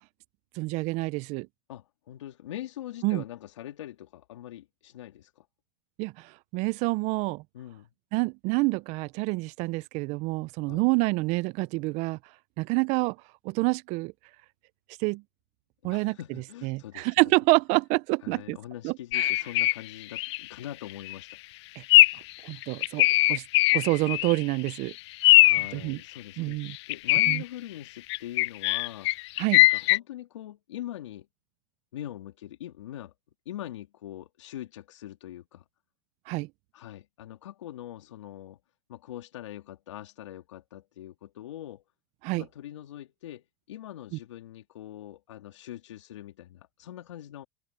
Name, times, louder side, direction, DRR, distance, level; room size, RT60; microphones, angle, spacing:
voice 1, 0.6-1.5 3.0-3.2 6.0-7.4 8.1-12.2 12.6-13.2 13.4-14.1 15.0-15.2 15.8-16.2 16.6-18.6 18.8-19.3 21.8-21.9 22.4-23.4 23.7-24.9 25.7-26.0 26.4-26.8 27.3-27.4 29.4-29.6 36.3-36.5 42.2-42.4, right 25 dB, 50° right, 0.7 m, -27 dB
voice 2, 1.7-5.5 7.5-7.9 10.7-10.8 15.8-17.1 18.2-21.3 25.2-26.6 26.9-29.1 29.6-31.3 31.9-33.1 33.5-35.6 36.7-38.6 38.9-41.8 42.4-47.5, left 12 dB, 85° left, 3.6 m, -42 dB
sound 1, 19.1-19.8 20.1-20.4 20.9-21.1 21.9-22.3 22.6-24.4 24.7-24.8 25.2-25.7 26.7-27.4 28.1-30.0, left 20 dB, 70° left, 0.4 m, -20 dB
hypercardioid pair, 115°, 15 cm